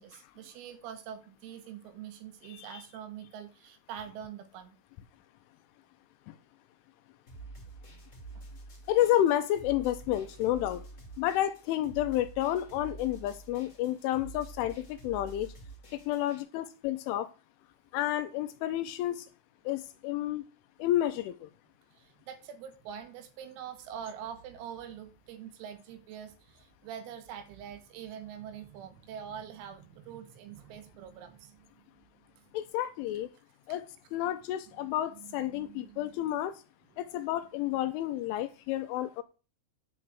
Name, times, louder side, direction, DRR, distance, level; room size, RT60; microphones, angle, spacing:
voice 1, 0.0-4.8 8.4-8.5 20.8-20.9 21.9-31.8 32.4-32.5 34.8-36.1 37.6-37.7, right 9 dB, 85° right, 4.2 m, -45 dB
voice 2, 2.5-2.8 6.3-6.4 8.9-10.9 11.2-15.5 15.9-17.3 17.9-19.3 19.7-20.4 20.8-21.5 32.5-33.3 33.7-36.6 37.0-39.2, left 13 dB, 80° left, 3.0 m, -30 dB
sound 1, 7.3-16.4, right 3 dB, 30° left, 1.4 m, -48 dB
11.0 x 4.9 x 7.8 m
omnidirectional pair, 5.9 m